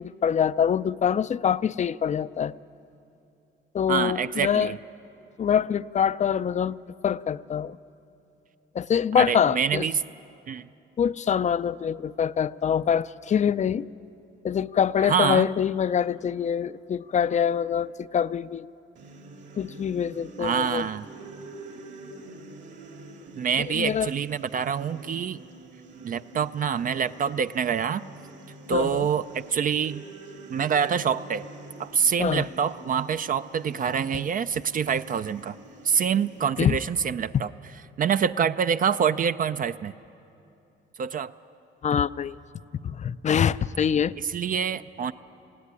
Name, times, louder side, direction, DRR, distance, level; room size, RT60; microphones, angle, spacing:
voice 1, 0.0-2.5 3.7-4.7 5.4-6.8 7.0-7.8 8.7-9.9 11.0-13.9 14.4-18.7 19.6-20.9 23.7-24.1 28.7-29.1 32.2-32.5 36.6-36.7 41.8-42.4 42.8-44.1, left 8 dB, 35° left, 17 dB, 0.4 m, -24 dB
voice 2, 3.9-4.8 9.1-10.0 10.5-10.7 15.0-15.5 20.4-21.1 23.4-25.4 26.0-28.0 28.7-30.0 30.5-31.5 31.8-35.6 35.8-37.5 38.0-39.9 41.0-41.3 44.2-45.1, right 7 dB, 45° right, 12 dB, 0.4 m, -26 dB
sound 1, 19.0-36.4, right 2 dB, 65° right, 2.1 m, -46 dB
19.5 x 16.0 x 9.7 m, 2.7 s
cardioid pair, 90°, 20 cm